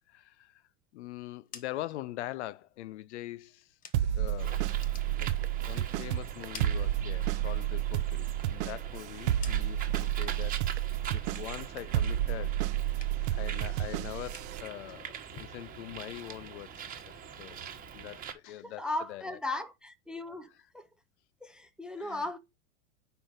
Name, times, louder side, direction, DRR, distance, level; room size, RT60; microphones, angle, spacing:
voice 1, 0.1-0.6 0.9-4.7 5.2-5.3 5.7-12.6 13.3-16.7 17.0-17.6 17.9-19.4 22.0-22.4, left 15 dB, 70° left, 0.6 m, -43 dB
sound 1, 1.2-4.3 4.6-5.9 6.2-7.6 7.9-10.1 10.4-10.9 11.2-12.6 12.8-13.4 13.7-16.5, left 6 dB, 25° left, 0.8 m, -54 dB
sound 2, 3.9-14.6, right 12 dB, 70° right, 0.6 m, -31 dB
Bird, 4.4-18.3, right 7 dB, 25° right, 1.2 m, -44 dB
voice 2, 18.6-20.5 20.7-20.9 21.4-22.4, left 2 dB, ahead, 0.4 m, -36 dB
5.1 x 4.5 x 5.1 m
hypercardioid pair, 125°, 35 cm